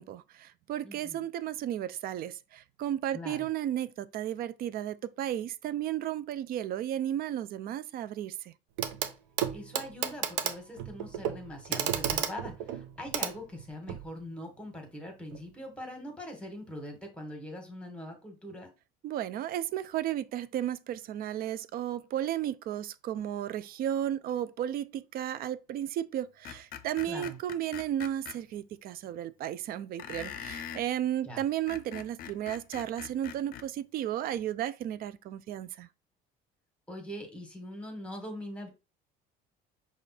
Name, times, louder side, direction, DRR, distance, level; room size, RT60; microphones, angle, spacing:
voice 1, 0.0-8.5 19.0-35.9, right 11 dB, 50° right, 0.4 m, -34 dB
voice 2, 0.8-1.2 3.1-3.5 9.5-18.7 27.1-27.4 31.2-31.4 36.9-38.7, left 1 dB, 5° left, 1.6 m, -42 dB
Clock, 8.8-9.1 9.4-14.1 15.3-15.4, right 10 dB, 80° right, 0.7 m, -33 dB
Screech, 26.4-28.4 30.0-30.9 31.5-33.7, left 9 dB, 50° left, 0.5 m, -42 dB
5.1 x 2.4 x 4.2 m
cardioid pair, 115°, 20 cm